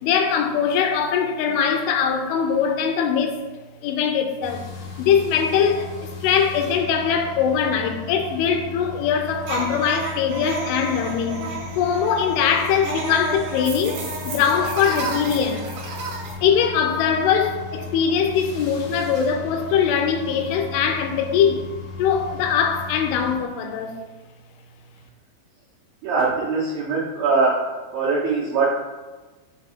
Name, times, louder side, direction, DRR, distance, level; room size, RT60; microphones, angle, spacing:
voice 1, 0.0-3.4 3.8-4.7 5.0-11.4 11.8-15.7 16.4-21.7 22.0-24.0, left 7 dB, 85° left, 3.0 m, -22 dB
sound 1, 4.4-23.4, left 5 dB, 70° left, 1.6 m, -37 dB
sound 2, 9.4-16.3, right 3 dB, 75° right, 1.9 m, -32 dB
voice 2, 26.0-27.6 27.9-28.7, right 4 dB, 90° right, 2.0 m, -21 dB
6.8 x 3.5 x 4.3 m
omnidirectional pair, 5.6 m